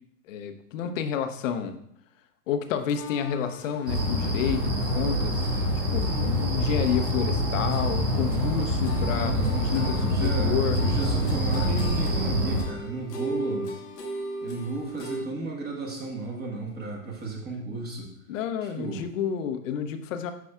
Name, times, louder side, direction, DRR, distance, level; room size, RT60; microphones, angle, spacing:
voice 1, 0.3-1.8 2.5-5.4 5.9-9.3 9.6-10.8 11.6-11.9 18.3-20.3, left 8 dB, 55° left, 9 dB, 0.8 m, -30 dB
sound 1, 2.9-15.2, left 1 dB, 80° left, 1.3 m, -39 dB
sound 2, 3.9-12.6, equal, 90° right, 1.8 m, -26 dB
voice 2, 9.2-13.7 14.4-18.1 18.6-19.0, right 3 dB, 20° right, -1 dB, 1.2 m, -34 dB
9.4 x 5.2 x 2.3 m, 0.74 s
hypercardioid pair, 105°, 47 cm